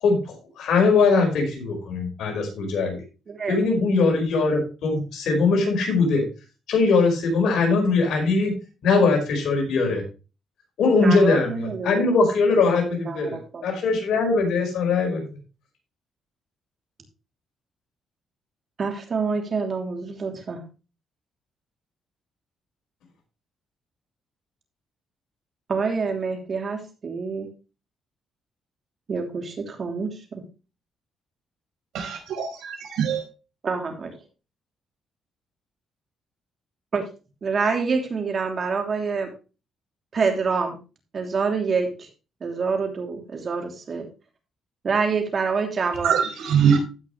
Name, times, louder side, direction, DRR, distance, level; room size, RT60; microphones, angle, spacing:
voice 1, 0.0-3.0 3.5-6.2 6.7-8.5 8.8-10.0 10.8-15.2, left 4 dB, 75° left, 1 dB, 5.0 m, -21 dB
voice 2, 3.3-3.6 11.0-12.2 12.8-13.7 18.8-20.6 25.7-27.5 29.1-30.4 33.6-34.1 36.9-37.0 37.4-39.3 40.1-40.8 41.1-42.1 42.4-44.1 44.8-46.1, right 5 dB, 45° right, 4 dB, 3.0 m, -26 dB
voice 3, 31.9-33.2 46.0-46.8, right 7 dB, 80° right, 1 dB, 4.9 m, -22 dB
15.5 x 6.2 x 3.2 m, 0.31 s
cardioid pair, 90°, 0 cm